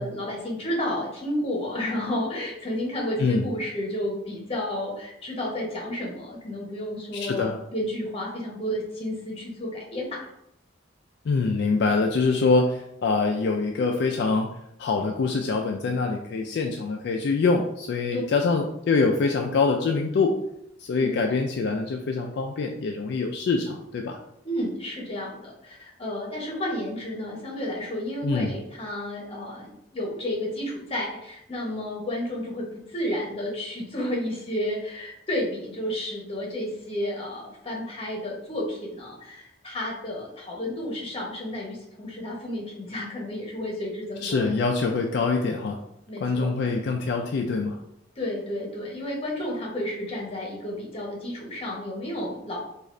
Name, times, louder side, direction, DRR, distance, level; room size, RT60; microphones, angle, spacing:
voice 1, 0.0-10.3 18.1-18.2 20.9-21.2 24.4-44.5 46.1-46.6 48.2-52.6, left 1 dB, 30° left, -2 dB, 0.9 m, -31 dB
voice 2, 7.1-7.6 11.2-14.5 14.8-20.3 20.8-24.2 28.2-28.5 44.2-45.8 46.2-47.8, left 4 dB, 60° left, 2 dB, 0.3 m, -24 dB
3.7 x 2.4 x 3.2 m, 0.80 s
head